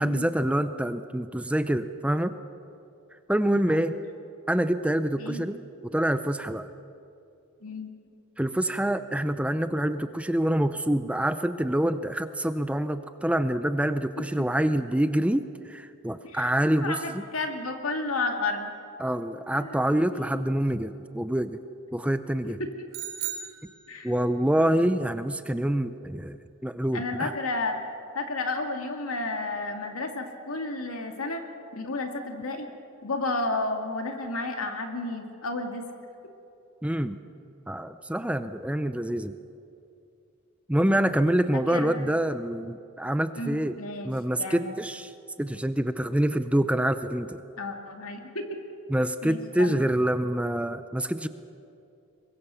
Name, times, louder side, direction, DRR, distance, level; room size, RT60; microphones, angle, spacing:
voice 1, 0.0-2.3 3.3-4.0 4.5-5.6 5.8-6.7 8.4-17.0 19.0-21.6 21.9-22.6 24.0-27.3 36.8-37.2 37.7-39.3 40.7-43.8 44.0-47.4 48.9-51.3, right 1 dB, 5° right, 11 dB, 0.5 m, -26 dB
voice 2, 16.8-18.7 19.5-19.8 20.1-20.4 22.4-22.9 23.9-24.2 24.6-24.8 26.9-27.8 28.1-31.4 31.7-32.7 33.0-35.8 40.8-41.1 41.5-42.1 43.4-44.1 44.4-44.7 47.6-48.6 49.2-49.8, left 2 dB, 75° left, 4 dB, 2.4 m, -32 dB
sound 1, 22.9-24.4, right 10 dB, 65° right, 2.6 m, -36 dB
24.0 x 21.0 x 7.0 m, 2.7 s
head